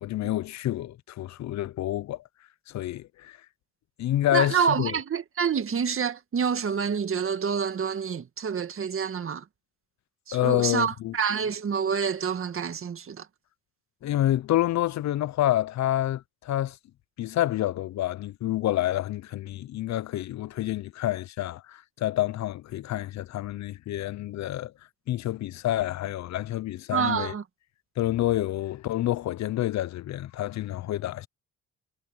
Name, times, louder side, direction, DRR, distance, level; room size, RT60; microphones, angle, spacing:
voice 1, 0.0-2.2 2.7-3.4 4.0-5.0 10.3-11.2 14.0-16.8 17.2-24.7 25.1-27.3 28.0-31.3, left 14 dB, 65° left, 0.6 m, -28 dB
voice 2, 4.3-9.4 10.3-13.3 26.9-27.4, right 6 dB, 45° right, 1.9 m, -27 dB
cardioid pair, 90°, 30 cm